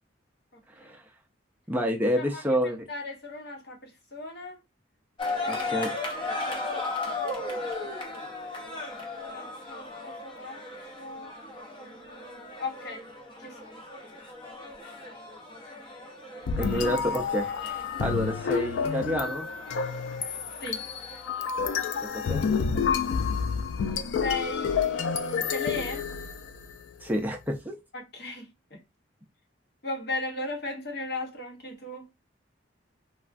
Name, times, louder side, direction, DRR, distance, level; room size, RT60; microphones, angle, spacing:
voice 1, 0.5-0.9 2.1-4.6 5.4-6.8 9.3-10.6 11.0-11.3 11.7-13.1 13.4-13.8 16.6-16.8 20.6-20.9 24.2-26.1 27.9-28.8 29.8-32.1, left 2 dB, 60° left, 0.9 m, -37 dB
voice 2, 1.7-2.8 5.5-5.9 16.6-19.5 22.1-22.4 27.0-27.8, equal, 10° right, 0.4 m, -29 dB
sound 1, 5.2-22.0, left 2 dB, 25° left, 0.7 m, -37 dB
sound 2, 16.5-26.8, left 6 dB, 90° left, 0.4 m, -29 dB
3.3 x 2.1 x 2.5 m
head